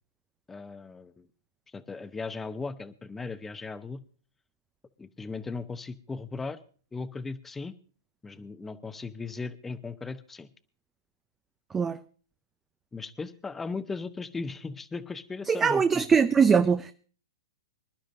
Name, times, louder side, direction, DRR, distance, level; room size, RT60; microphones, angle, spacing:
voice 1, 0.5-1.3 1.7-4.0 5.0-6.6 6.9-7.7 8.2-10.5 12.9-16.0, left 4 dB, 10° left, 0.8 m, -37 dB
voice 2, 15.5-16.9, right 6 dB, 15° right, 0.5 m, -22 dB
25.5 x 11.5 x 2.7 m
hypercardioid pair, 120°, 2 cm